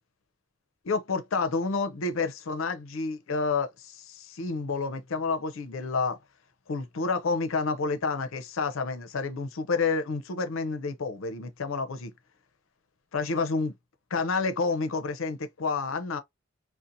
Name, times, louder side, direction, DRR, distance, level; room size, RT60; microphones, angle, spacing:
voice 1, 0.8-6.2 6.7-12.1 13.1-13.7 14.1-16.2, left 4 dB, 80° left, 0.5 m, -29 dB
2.5 x 2.1 x 2.6 m
head